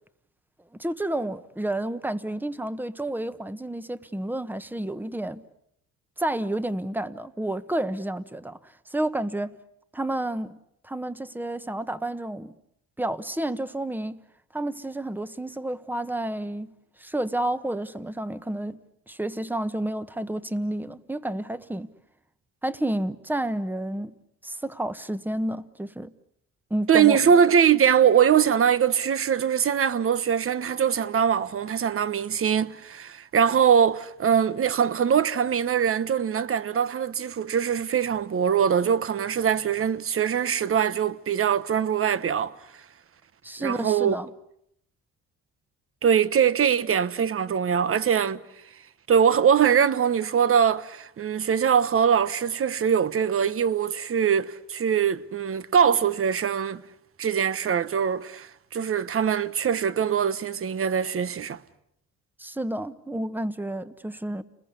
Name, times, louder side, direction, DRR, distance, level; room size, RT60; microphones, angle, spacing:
voice 1, 0.8-5.4 6.2-8.6 8.9-9.5 9.9-10.6 10.8-12.5 13.0-14.2 14.5-16.7 17.0-18.8 19.1-21.9 22.6-24.1 24.4-26.1 26.7-27.2 43.4-44.3 62.4-64.4, right 1 dB, 5° right, 1.3 m, -30 dB
voice 2, 26.9-42.5 43.6-44.2 46.0-48.4 49.1-56.8 57.2-61.6, right 8 dB, 45° right, 1.2 m, -22 dB
30.0 x 21.0 x 8.3 m
cardioid pair, 90°, 30 cm